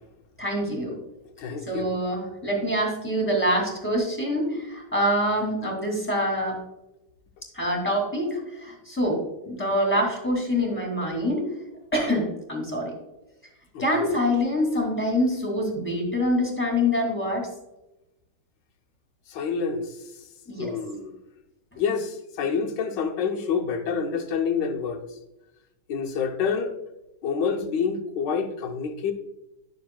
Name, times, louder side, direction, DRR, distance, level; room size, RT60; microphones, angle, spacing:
voice 1, 0.4-1.0 1.6-6.6 7.5-11.5 11.9-12.9 13.8-17.5 20.5-20.7, equal, 5° left, -1 dB, 2.3 m, -25 dB
voice 2, 1.4-1.9 13.7-14.1 19.3-20.0 20.6-21.2 21.8-25.0 25.9-26.7 27.2-29.1, left 6 dB, 70° left, 4 dB, 1.4 m, -27 dB
11.0 x 6.8 x 2.3 m, 0.95 s
omnidirectional pair, 2.2 m